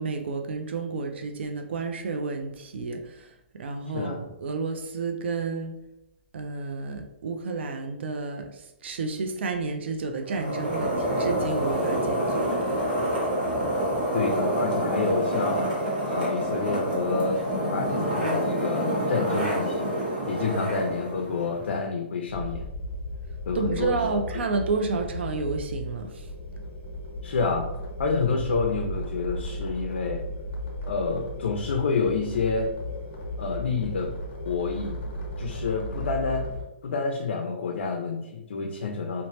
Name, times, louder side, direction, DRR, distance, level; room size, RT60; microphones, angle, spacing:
voice 1, 0.0-5.7 6.3-12.8 23.5-26.3, right 4 dB, 75° right, 4 dB, 0.4 m, -31 dB
sound 1, 10.2-21.8, right 1 dB, 45° right, 1.0 m, -27 dB
voice 2, 14.1-15.7 16.1-20.0 20.3-22.7 23.5-24.4 27.2-27.7 28.0-30.2 30.8-32.7 33.4-34.1 34.4-35.1 35.4-36.5 36.8-39.3, left 4 dB, 80° left, 2 dB, 0.4 m, -28 dB
sound 2, 22.3-36.6, equal, 45° left, 0.9 m, -35 dB
2.8 x 2.0 x 3.0 m, 0.89 s
hypercardioid pair, 175°, 6 cm